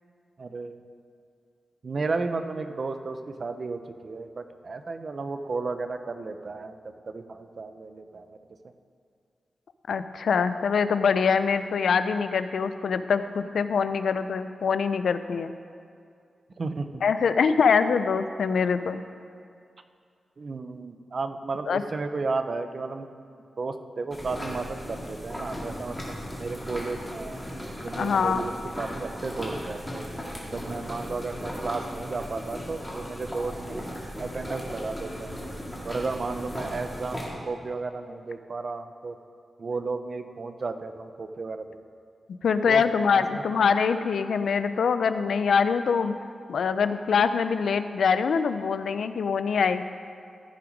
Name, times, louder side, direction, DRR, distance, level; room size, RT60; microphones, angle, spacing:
voice 1, 0.4-0.9 1.8-6.7 7.1-8.4 16.6-17.0 20.4-23.1 23.6-27.4 27.8-28.5 28.8-30.0 30.5-33.8 34.2-35.4 35.8-37.2 37.5-39.2 39.6-41.8 42.7-42.8 43.1-43.4, right 3 dB, 40° right, 9 dB, 0.5 m, -33 dB
voice 2, 9.9-15.5 17.0-19.0 21.7-21.8 28.0-28.5 42.4-46.1 46.5-49.8, left 6 dB, 80° left, 11 dB, 0.4 m, -24 dB
sound 1, 24.1-37.3, equal, 10° left, 1.8 m, -37 dB
14.0 x 5.9 x 5.1 m, 2.3 s
wide cardioid pair, 165°, 0 cm